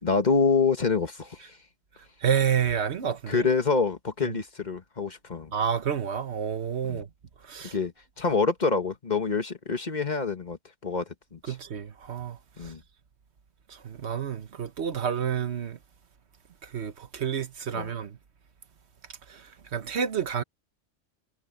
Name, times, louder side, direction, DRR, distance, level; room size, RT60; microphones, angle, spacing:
voice 1, 0.0-1.6 3.3-5.5 6.9-7.0 7.7-11.6 12.6-12.8 17.7-17.9, left 4 dB, 40° left, 1.5 m, -27 dB
voice 2, 2.2-3.5 4.2-4.3 5.5-7.1 7.4-7.7 11.5-12.7 13.7-15.8 16.6-18.2 19.3-20.4, right 8 dB, 65° right, 1.3 m, -29 dB
omnidirectional pair, 1.2 m